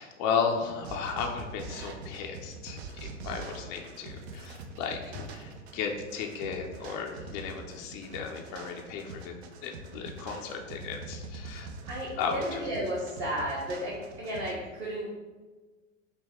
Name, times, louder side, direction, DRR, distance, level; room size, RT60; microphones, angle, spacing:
voice 1, 0.0-9.3 9.6-11.7 12.2-12.6, left 6 dB, 30° left, 1 dB, 0.4 m, -34 dB
sound 1, 0.8-14.5, right 3 dB, 50° right, 0.6 m, -43 dB
voice 2, 11.9-15.1, equal, 35° right, -5 dB, 1.1 m, -33 dB
5.3 x 2.2 x 3.6 m, 1.3 s
hypercardioid pair, 100°, 41 cm